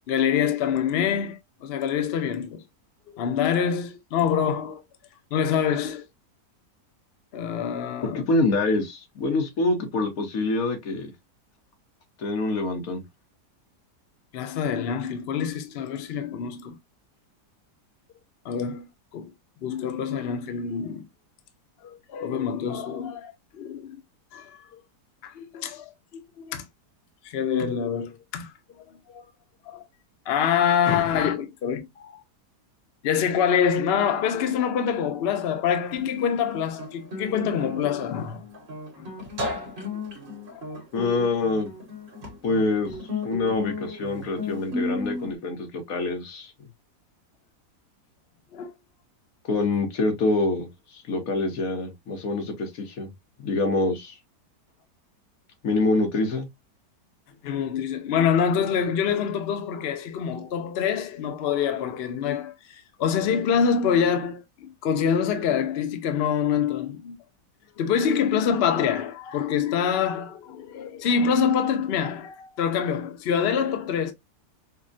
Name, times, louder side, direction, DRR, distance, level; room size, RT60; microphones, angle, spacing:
voice 1, 0.1-2.6 3.1-4.8 5.3-6.1 7.3-8.2 14.3-16.8 18.4-18.9 19.1-19.3 19.6-21.0 21.8-24.0 24.3-24.8 25.2-26.6 27.2-28.5 29.1-29.3 29.7-29.8 30.3-32.2 33.0-38.4 39.0-39.1 40.5-40.6 48.5-48.7 57.4-67.2 67.8-74.1, left 7 dB, 75° left, 0.5 m, -26 dB
voice 2, 8.0-11.1 12.2-13.0 40.9-41.7 42.4-42.9 43.2-46.5 49.5-50.7 50.9-53.1 53.4-54.1 55.6-56.5, left 2 dB, 60° left, 1.3 m, -25 dB
Guitar, 35.9-45.3, left 2 dB, 45° right, 1.2 m, -34 dB
5.0 x 2.1 x 2.4 m
omnidirectional pair, 1.8 m